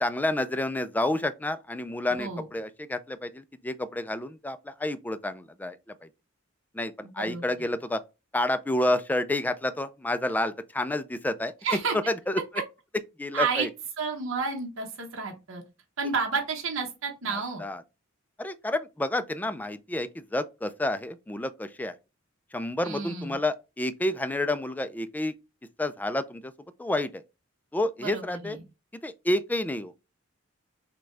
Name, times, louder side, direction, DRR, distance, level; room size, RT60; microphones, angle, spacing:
voice 1, 0.0-6.1 6.7-8.0 8.3-11.5 12.1-12.4 13.2-13.7 17.3-17.8 18.4-21.9 22.5-25.3 25.8-26.5 26.8-27.2 27.7-28.6 29.0-29.9, left 1 dB, 10° left, 0.3 m, -29 dB
voice 2, 11.6-11.9 13.3-13.7 14.0-15.6 16.0-17.6 22.8-23.3 28.0-28.6, right 5 dB, 75° right, 1.0 m, -30 dB
6.0 x 2.2 x 3.2 m
head